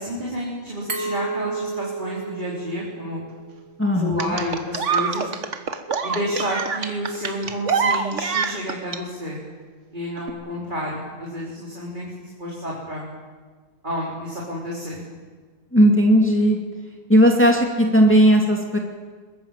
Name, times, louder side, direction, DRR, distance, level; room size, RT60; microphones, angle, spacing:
voice 1, 0.0-3.2 4.0-5.3 6.0-9.4 9.9-13.0 13.8-15.0, equal, 35° right, -5 dB, 4.4 m, -30 dB
Glass, 0.9-3.7, right 4 dB, 85° right, 3.4 m, -31 dB
voice 2, 3.8-4.3 15.7-16.6 17.1-18.8, equal, 10° left, 0 dB, 2.5 m, -16 dB
sound 1, 4.2-9.0 10.2-10.3, right 5 dB, 65° right, 1.7 m, -25 dB
23.0 x 21.0 x 7.6 m, 1.4 s
omnidirectional pair, 1.4 m